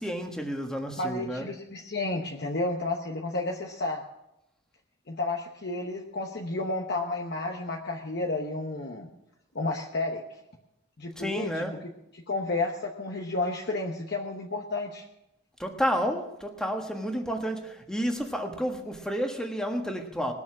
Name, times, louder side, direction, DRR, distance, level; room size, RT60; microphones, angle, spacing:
voice 1, 0.0-1.5 11.2-11.8 15.6-20.3, equal, 5° left, 3 dB, 1.3 m, -31 dB
voice 2, 1.0-4.0 5.1-9.1 9.5-10.2 11.0-11.9 12.3-15.0, left 2 dB, 50° left, 1 dB, 1.1 m, -31 dB
20.5 x 7.1 x 6.1 m, 0.86 s
head